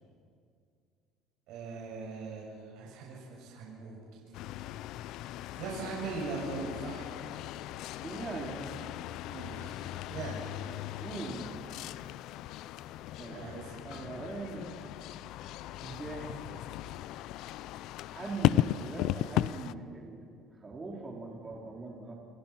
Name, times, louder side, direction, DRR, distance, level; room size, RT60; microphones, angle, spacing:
voice 1, 1.5-4.0 5.5-7.1 9.3-10.6 13.3-13.7, right 4 dB, 65° right, -4 dB, 7.6 m, -40 dB
sound 1, 4.3-19.7, left 14 dB, 65° left, 0.6 m, -36 dB
voice 2, 8.0-8.8 11.0-11.5 13.2-13.4 13.8-14.7 15.8-16.5 18.1-20.2 20.6-22.1, right 3 dB, 20° right, -2 dB, 4.7 m, -40 dB
29.5 x 28.0 x 6.1 m, 2.3 s
cardioid pair, 125°, 0 cm